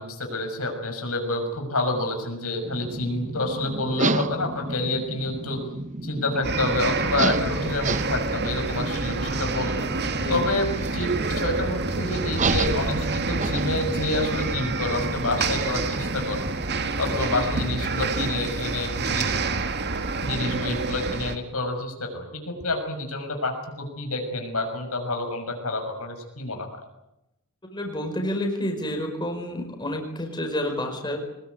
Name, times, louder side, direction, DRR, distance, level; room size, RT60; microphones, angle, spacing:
voice 1, 0.0-5.6 6.0-9.9 10.3-16.4 17.0-19.4 20.2-26.7, left 2 dB, 75° left, 4 dB, 6.3 m, -28 dB
sound 1, 2.6-16.8, right 3 dB, 35° right, 0.9 m, -32 dB
sound 2, 6.4-21.4, right 3 dB, 50° right, 2.0 m, -28 dB
voice 2, 27.7-31.2, left 1 dB, 20° left, 3 dB, 4.9 m, -29 dB
23.5 x 21.0 x 9.5 m, 0.88 s
head